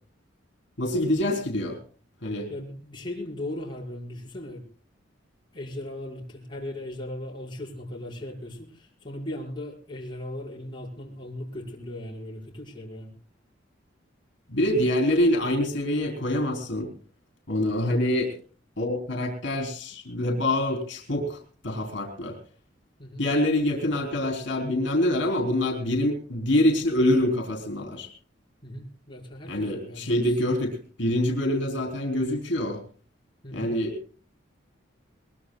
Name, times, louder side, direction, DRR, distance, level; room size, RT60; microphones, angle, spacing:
voice 1, 0.8-1.8 2.2-2.5 14.5-16.9 17.5-18.3 18.8-21.4 21.6-22.4 23.2-28.1 29.5-32.8 33.5-34.0, left 1 dB, 70° left, 3 dB, 3.8 m, -25 dB
voice 2, 2.5-4.7 5.5-13.1 17.9-18.1 23.0-23.2 28.6-30.4 33.4-33.7, left 1 dB, 25° left, -3 dB, 5.5 m, -38 dB
22.5 x 21.0 x 2.3 m, 0.40 s
head